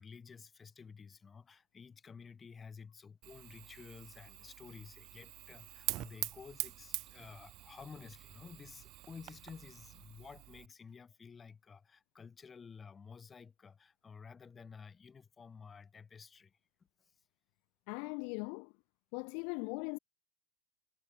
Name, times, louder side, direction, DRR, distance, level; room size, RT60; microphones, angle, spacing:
voice 1, 0.0-16.6, left 5 dB, 15° left, 7.4 m, -53 dB
Fire, 3.2-10.7, right 18 dB, 40° right, 1.3 m, -45 dB
voice 2, 17.9-18.7 19.1-20.0, left 37 dB, 45° left, 1.2 m, -39 dB
figure-of-eight pair, 90°, 0 cm